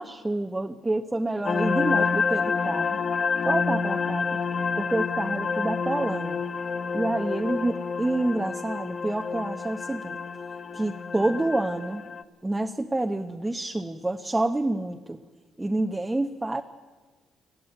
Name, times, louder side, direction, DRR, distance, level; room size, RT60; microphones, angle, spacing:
voice 1, 0.0-3.0 3.4-4.4 4.8-6.4 6.9-10.2 10.7-12.0 12.4-15.2 15.6-16.6, right 2 dB, 15° right, 4 dB, 0.9 m, -28 dB
sound 1, 1.5-12.2, left 5 dB, 45° left, 0.9 m, -28 dB
21.0 x 14.5 x 9.3 m, 1.4 s
cardioid pair, 90°, 0 cm